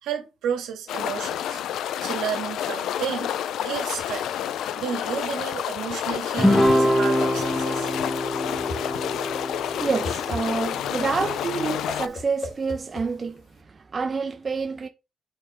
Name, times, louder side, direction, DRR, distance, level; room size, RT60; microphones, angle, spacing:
voice 1, 0.0-1.8 2.0-3.3 3.6-4.3 4.8-7.9, right 8 dB, 85° right, 2.1 m, -32 dB
sound 1, 0.9-12.1, left 10 dB, 80° left, 0.4 m, -29 dB
Guitar, 6.4-11.0, equal, 5° left, 1.0 m, -24 dB
Whoosh swoosh swish, 8.5-13.6, left 2 dB, 55° left, 1.9 m, -38 dB
voice 2, 9.8-14.9, right 4 dB, 35° right, 0.7 m, -28 dB
5.1 x 4.3 x 5.1 m
cardioid pair, 90°, 0 cm